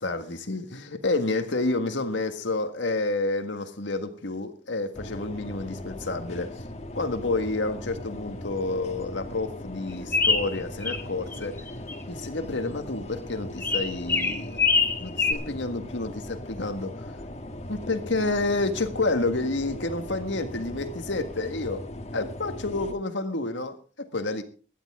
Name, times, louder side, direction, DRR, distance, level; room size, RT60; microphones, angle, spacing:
voice 1, 0.0-6.6 6.9-11.6 12.1-14.6 15.0-16.9 17.7-21.9 22.1-24.4, left 2 dB, 85° left, 1.7 m, -29 dB
sound 1, 4.9-22.9, left 1 dB, 35° left, 1.6 m, -39 dB
sound 2, 10.1-11.0 11.3-11.9 13.6-15.3, left 4 dB, 10° left, 1.3 m, -24 dB
16.5 x 12.0 x 3.6 m
head